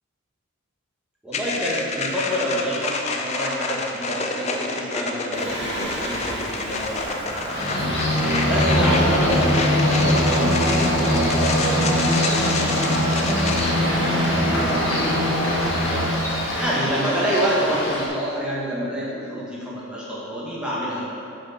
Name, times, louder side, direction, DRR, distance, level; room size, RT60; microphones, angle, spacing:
voice 1, 1.2-21.1, equal, 5° right, -7 dB, 1.4 m, -28 dB
sound 1, 1.3-13.7, left 3 dB, 30° left, 0.5 m, -29 dB
Singing, 5.3-16.7, equal, 55° right, 1.5 m, -23 dB
sound 2, 7.5-18.1, left 1 dB, 60° left, 1.8 m, -28 dB
6.0 x 5.1 x 5.7 m, 2.7 s
head